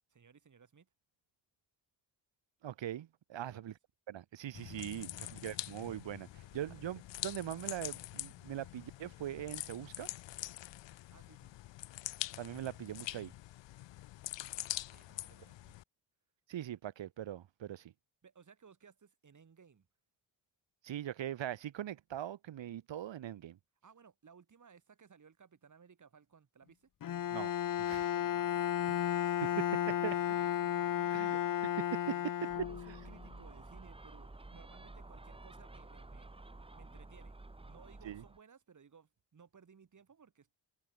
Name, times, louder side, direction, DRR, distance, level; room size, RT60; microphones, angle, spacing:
voice 1, 0.1-0.9 3.4-3.7 4.9-5.6 6.3-6.9 11.1-11.6 14.9-15.7 18.2-19.9 23.8-26.9 27.9-31.8 32.0-36.5 36.7-37.4 37.7-40.5, right 6 dB, 40° right, 4.2 m, -61 dB
voice 2, 2.6-3.7 4.1-6.3 6.5-10.1 12.4-13.3 16.5-17.9 20.8-23.6 27.3-27.5 27.8-28.1 29.4-30.1 31.1-31.4 31.6-32.0 38.0-38.2, right 11 dB, 90° right, 2.2 m, -41 dB
sound 1, 4.5-15.8, left 15 dB, 80° left, 0.6 m, -45 dB
Bowed string instrument, 27.0-33.2, left 10 dB, 50° left, 0.7 m, -33 dB
Gull seagull, 32.5-38.4, right 2 dB, 10° right, 2.1 m, -51 dB
wide cardioid pair, 140°, 43 cm